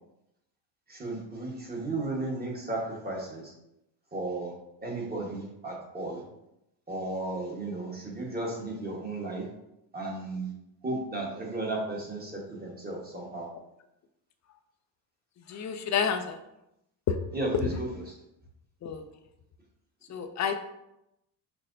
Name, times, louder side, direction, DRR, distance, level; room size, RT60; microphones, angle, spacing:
voice 1, 0.9-3.5 4.1-4.5 4.8-6.2 6.9-9.5 9.9-10.5 10.8-13.5 17.3-18.1, right 2 dB, 20° right, -2 dB, 1.1 m, -34 dB
voice 2, 15.5-16.4 17.1-17.2 18.8-19.0 20.1-20.6, left 7 dB, 40° left, 7 dB, 0.4 m, -29 dB
5.7 x 2.1 x 2.6 m, 0.86 s
supercardioid pair, 80°, 46 cm